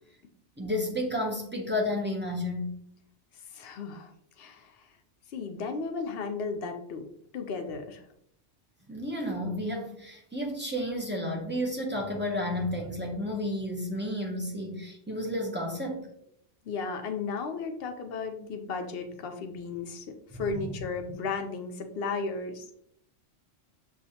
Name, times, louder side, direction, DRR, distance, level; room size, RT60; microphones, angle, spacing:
voice 1, 0.6-2.8 8.9-16.1 20.3-20.8, left 1 dB, 10° right, -1 dB, 0.6 m, -32 dB
voice 2, 3.5-4.1 4.4-4.7 5.3-7.1 7.3-8.0 16.6-20.1 20.3-22.6, left 4 dB, 60° left, 5 dB, 0.8 m, -34 dB
6.5 x 2.4 x 2.7 m, 0.71 s
omnidirectional pair, 1.2 m